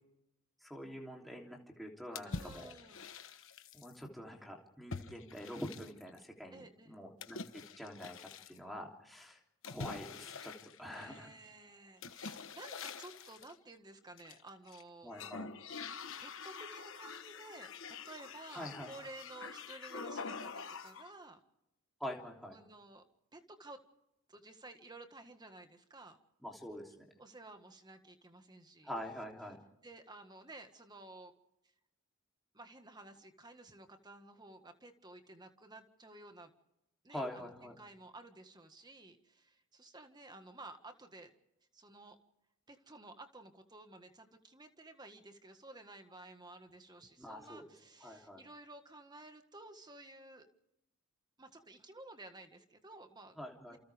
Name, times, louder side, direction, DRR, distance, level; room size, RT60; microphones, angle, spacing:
voice 1, 0.6-2.7 3.7-9.4 9.7-10.5 10.8-11.3 15.0-15.5 18.5-19.1 22.0-22.6 26.4-27.1 28.8-29.6 37.1-37.8 47.2-47.6 48.0-48.4 53.4-53.8, left 1 dB, ahead, -1 dB, 3.3 m, -45 dB
sound 1, 2.2-4.0 4.9-6.2 7.2-8.6 9.6-11.3 12.0-13.5 14.2-14.8 15.1-21.1, left 4 dB, 60° left, 1.2 m, -46 dB
voice 2, 2.2-3.1 6.5-7.0 10.9-15.1 16.2-21.4 22.5-23.0 23.3-23.8 24.3-26.2 27.2-28.9 29.8-31.3 32.5-36.5 37.0-41.3 41.7-42.2 42.7-50.5 51.4-53.4 53.7-53.8, right 2 dB, 20° right, 7 dB, 1.7 m, -53 dB
29.5 x 28.0 x 3.6 m, 0.89 s
head